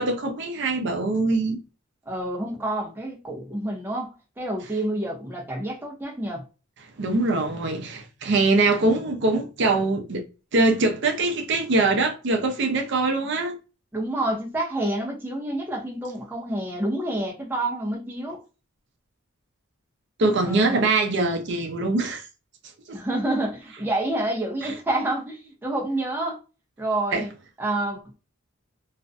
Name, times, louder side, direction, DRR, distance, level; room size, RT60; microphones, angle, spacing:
voice 1, 0.0-1.6 7.0-10.2 10.5-13.6 20.2-22.2 22.9-23.0 27.1-27.3, right 3 dB, 55° right, 0.5 m, -23 dB
voice 2, 2.1-6.4 8.7-9.0 13.9-18.4 20.4-20.9 22.9-26.4 26.8-27.3 27.6-28.0, right 1 dB, 10° right, 0.6 m, -28 dB
2.4 x 2.1 x 2.5 m
head